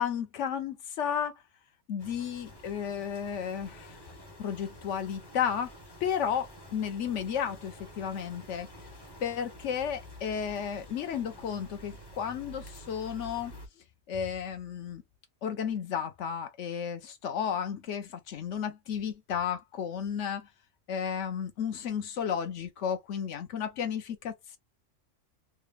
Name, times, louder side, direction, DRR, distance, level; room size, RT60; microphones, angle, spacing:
voice 1, 0.0-1.4 1.9-4.0 4.4-5.7 6.0-8.7 9.2-13.5 14.1-15.0 15.4-20.5 20.9-24.6, left 8 dB, 70° left, 1.0 m, -33 dB
sound 1, 2.0-13.7, equal, 20° left, 0.8 m, -49 dB
3.3 x 2.3 x 3.2 m
omnidirectional pair, 1.4 m